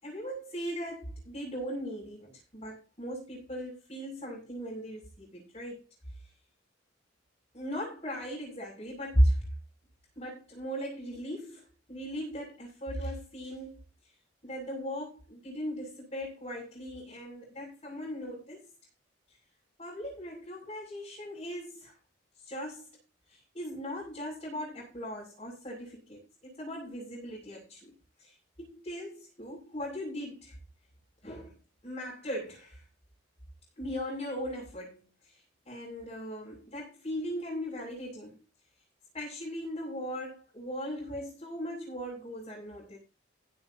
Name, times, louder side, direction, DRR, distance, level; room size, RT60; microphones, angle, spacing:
voice 1, 0.0-5.9 7.5-9.4 10.2-13.8 14.4-18.6 19.8-21.9 22.5-22.9 23.3-27.9 28.2-28.3 28.6-30.6 31.2-31.5 31.8-32.8 33.8-35.0 35.7-38.4 39.1-43.0, equal, 30° left, 6.9 m, -37 dB
16.0 x 11.5 x 2.8 m
head